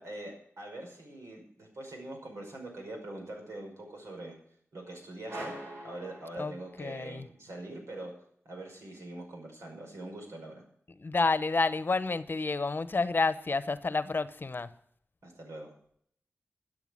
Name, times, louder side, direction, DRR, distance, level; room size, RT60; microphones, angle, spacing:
voice 1, 0.0-4.4 4.7-5.5 5.8-8.1 8.5-10.6 15.2-15.7, right 1 dB, 80° right, 5.4 m, -43 dB
sound 1, 5.3-7.0, right 1 dB, 55° right, 5.5 m, -43 dB
voice 2, 6.8-7.3 11.0-14.7, left 3 dB, 45° left, 0.9 m, -29 dB
13.5 x 7.9 x 7.7 m
cardioid pair, 60°, 5 cm